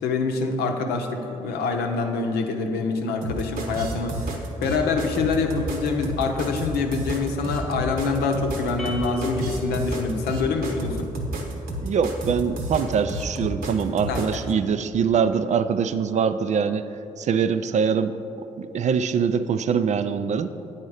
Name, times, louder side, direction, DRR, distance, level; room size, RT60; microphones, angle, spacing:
voice 1, 0.0-11.1 14.1-14.4, left 4 dB, 70° left, 4 dB, 0.7 m, -26 dB
sound 1, 3.2-14.4, right 1 dB, 65° right, 1.0 m, -31 dB
sound 2, 8.8-11.3, left 1 dB, ahead, 0.8 m, -33 dB
voice 2, 11.8-16.9 17.2-18.1 18.6-20.5, right 6 dB, 45° right, 11 dB, 0.4 m, -23 dB
8.7 x 4.3 x 4.8 m, 2.8 s
hypercardioid pair, 45°, 17 cm